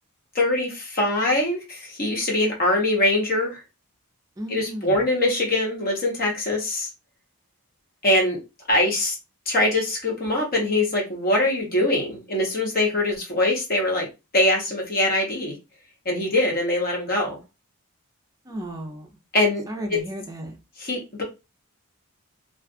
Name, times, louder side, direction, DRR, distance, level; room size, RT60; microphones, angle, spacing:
voice 1, 0.3-3.6 4.5-6.9 8.0-8.4 8.7-9.2 9.5-14.1 14.3-15.6 16.0-17.4 19.3-19.6 19.9-20.0 20.8-21.2, left 1 dB, 40° left, -1 dB, 0.9 m, -23 dB
voice 2, 4.4-5.0 18.5-19.1 19.7-20.6, right 1 dB, 15° right, 3 dB, 0.5 m, -34 dB
2.4 x 2.3 x 2.3 m, 0.27 s
head